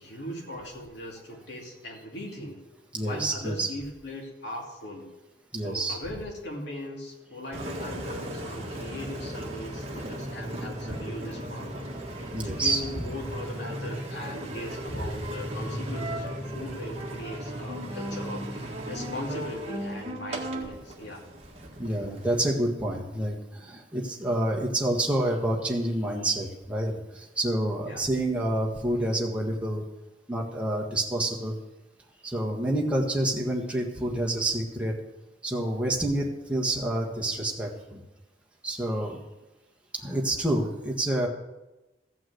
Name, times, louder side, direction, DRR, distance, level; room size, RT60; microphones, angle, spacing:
voice 1, 0.0-2.6 3.0-5.1 5.5-21.2 27.9-28.0, left 1 dB, 60° left, -1 dB, 2.7 m, -39 dB
voice 2, 2.9-3.7 5.5-6.0 12.3-13.3 13.9-15.1 21.8-29.8 30.3-31.6 32.2-35.0 35.4-38.0 38.6-39.2 39.9-41.3, right 1 dB, 5° right, -1 dB, 1.5 m, -28 dB
Engine, 7.5-22.5, right 1 dB, 30° right, 1.7 m, -36 dB
14.5 x 6.0 x 7.8 m, 1.0 s
head